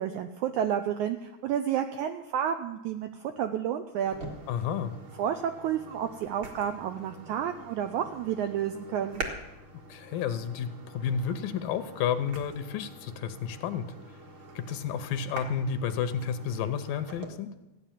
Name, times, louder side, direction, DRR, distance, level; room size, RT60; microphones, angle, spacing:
voice 1, 0.0-4.3 5.2-9.2, right 9 dB, 85° right, 7 dB, 1.7 m, -31 dB
sound 1, 4.0-17.3, right 2 dB, 50° right, 1.6 m, -45 dB
voice 2, 4.5-4.9 9.9-13.9 14.6-17.5, left 7 dB, 80° left, 10 dB, 2.4 m, -31 dB
15.0 x 9.3 x 7.3 m, 0.97 s
omnidirectional pair, 4.1 m